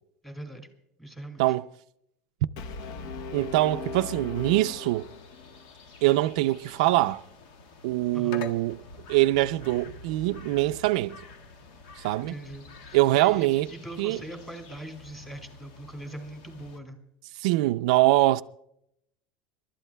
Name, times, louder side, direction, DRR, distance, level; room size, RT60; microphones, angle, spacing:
voice 1, 0.2-0.7 1.0-1.6 8.1-8.4 12.2-17.0, right 1 dB, 5° left, 2.1 m, -41 dB
Brass instrument, 2.6-5.6, left 4 dB, 60° left, 0.9 m, -38 dB
voice 2, 3.3-5.0 6.0-7.2 7.8-8.8 9.1-11.2 12.0-12.3 12.9-13.7 14.0-14.2 17.4-18.4, right 17 dB, 70° right, 0.4 m, -23 dB
sound 1, 4.3-16.8, left 4 dB, 85° left, 1.7 m, -47 dB
29.0 x 12.5 x 2.2 m
cardioid pair, 170°, 4 cm